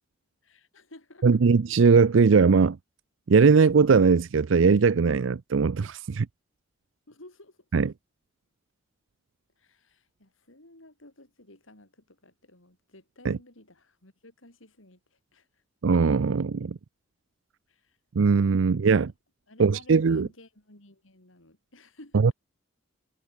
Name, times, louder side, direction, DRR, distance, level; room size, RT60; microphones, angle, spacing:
voice 1, 0.4-1.4 7.1-7.6 9.6-15.6 17.7-18.0 18.6-18.9 19.5-22.3, left 1 dB, 90° left, 6.2 m, -53 dB
voice 2, 1.2-2.8 3.3-6.3 7.7-7.9 13.2-13.4 15.8-16.8 18.2-19.1 19.6-20.3 22.2-22.3, right 5 dB, 75° right, 0.5 m, -20 dB
head